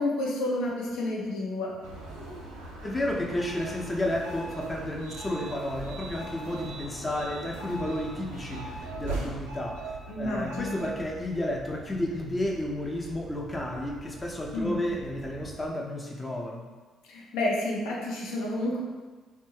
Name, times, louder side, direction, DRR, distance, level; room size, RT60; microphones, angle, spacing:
voice 1, 0.0-1.7 10.1-10.8 14.5-14.9 17.1-18.8, left 1 dB, 70° left, -3 dB, 0.5 m, -30 dB
sound 1, 1.8-15.7, right 2 dB, 80° right, 0.4 m, -41 dB
voice 2, 2.8-16.6, left 1 dB, 20° left, -1 dB, 0.5 m, -32 dB
2.6 x 2.1 x 3.1 m, 1.4 s
figure-of-eight pair, 45°, 0 cm